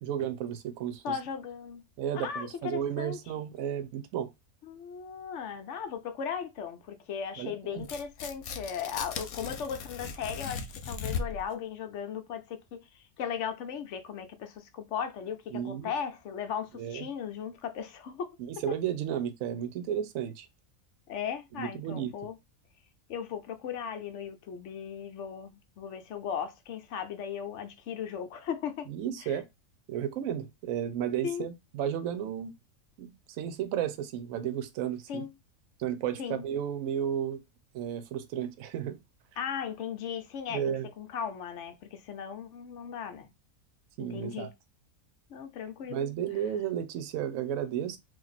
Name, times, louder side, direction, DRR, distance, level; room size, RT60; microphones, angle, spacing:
voice 1, 0.0-1.2 2.0-4.3 7.4-7.9 15.5-15.9 16.8-17.1 18.5-20.5 21.5-22.1 28.9-29.4 29.9-32.5 33.0-35.2 35.8-37.4 37.7-39.0 40.5-40.9 44.0-44.5 45.9-48.0, right 9 dB, 75° right, 1.0 m, -33 dB
voice 2, 1.0-1.8 2.1-3.2 4.6-18.4 18.7-18.8 21.1-22.4 23.1-28.9 29.2-29.4 31.2-31.5 35.1-35.3 36.2-36.4 39.4-43.3 44.0-44.5 45.3-46.1, left 7 dB, 65° left, 0.9 m, -37 dB
Tearing, 7.8-11.5, left 5 dB, 85° left, 1.1 m, -37 dB
2.9 x 2.6 x 4.0 m
omnidirectional pair, 1.5 m